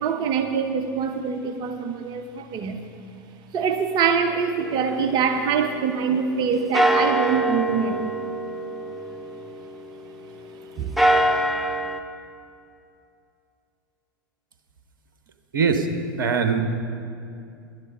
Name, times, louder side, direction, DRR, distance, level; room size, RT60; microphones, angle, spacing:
voice 1, 0.0-2.8 3.5-8.2 10.8-10.9, right 6 dB, 40° right, 7 dB, 0.8 m, -24 dB
sound 1, 4.6-6.4 6.7-10.3 10.8-12.0, right 1 dB, ahead, 0.7 m, -25 dB
voice 2, 15.5-15.9 16.2-16.6, right 5 dB, 70° right, 7 dB, 1.0 m, -21 dB
11.5 x 9.8 x 5.5 m, 2.5 s
figure-of-eight pair, 85°, 11 cm